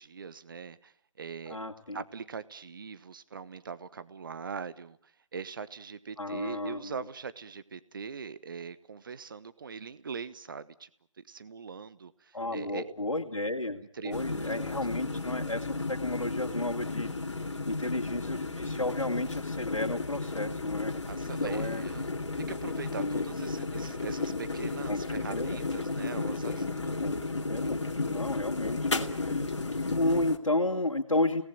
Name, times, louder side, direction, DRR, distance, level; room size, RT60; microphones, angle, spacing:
voice 1, 0.0-1.6 1.9-10.9 11.2-12.9 13.9-14.9 17.4-17.5 21.1-22.1 22.5-27.0, right 5 dB, 40° right, 15 dB, 1.2 m, -42 dB
voice 2, 1.5-2.0 6.2-6.9 12.3-21.0 21.4-21.8 23.0-23.2 24.9-25.6 27.0-27.1 27.5-27.8 28.1-31.4, left 2 dB, 85° left, -1 dB, 2.6 m, -32 dB
sound 1, 14.1-30.4, left 3 dB, 65° left, 2.6 m, -33 dB
29.5 x 18.5 x 9.1 m, 0.63 s
figure-of-eight pair, 155°, 16 cm